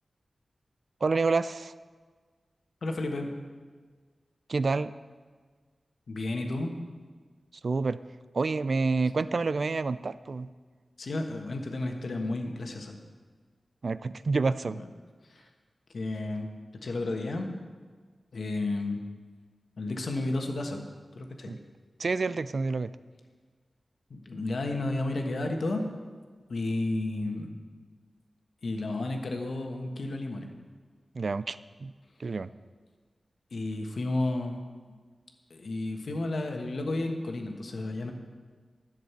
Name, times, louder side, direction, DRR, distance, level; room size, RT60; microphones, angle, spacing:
voice 1, 1.0-1.7 4.5-4.9 7.6-8.0 8.3-10.5 13.8-14.8 21.5-21.6 22.0-22.9 31.2-31.9 32.2-32.5, right 4 dB, 60° right, 15 dB, 0.4 m, -28 dB
voice 2, 2.8-3.3 6.1-6.7 11.0-13.0 14.7-14.9 15.3-15.5 15.9-17.6 18.3-19.0 19.8-20.9 21.1-21.5 24.1-25.9 26.5-27.6 28.6-30.5 33.5-34.6 34.9-35.0 35.5-38.1, left 2 dB, 70° left, 3 dB, 1.4 m, -32 dB
11.0 x 6.6 x 8.2 m, 1.5 s
wide cardioid pair, 90°, 0 cm